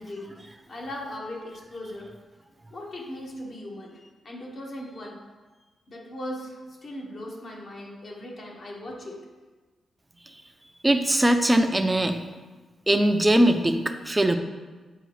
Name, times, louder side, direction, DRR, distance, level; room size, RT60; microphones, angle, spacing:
voice 1, 0.0-2.1 2.7-5.2 5.9-9.2, left 1 dB, 55° left, -2 dB, 1.4 m, -38 dB
voice 2, 10.8-12.2 12.9-14.4, right 1 dB, 15° right, 6 dB, 0.6 m, -21 dB
8.0 x 4.6 x 3.1 m, 1.3 s
cardioid pair, 80°, 0 cm